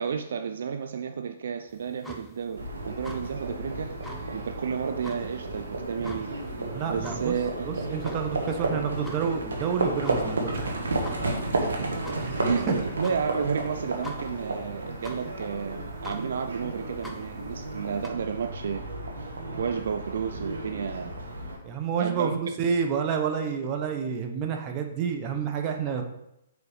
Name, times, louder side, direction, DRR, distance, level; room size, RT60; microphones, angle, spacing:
voice 1, 0.0-3.9 4.3-6.3 6.9-7.7 11.6-11.9 12.4-18.9 19.6-21.1 22.0-22.4, right 6 dB, 70° right, 7 dB, 0.4 m, -32 dB
sound 1, 1.7-18.1, equal, 5° left, 0.7 m, -46 dB
Livestock farm animals working animals, 2.6-21.6, right 2 dB, 85° right, 1.3 m, -33 dB
voice 2, 6.7-7.3 7.7-10.8 12.2-12.7 21.6-26.0, right 6 dB, 30° right, 4 dB, 0.9 m, -29 dB
5.0 x 4.6 x 5.0 m, 0.83 s
hypercardioid pair, 140°, 0 cm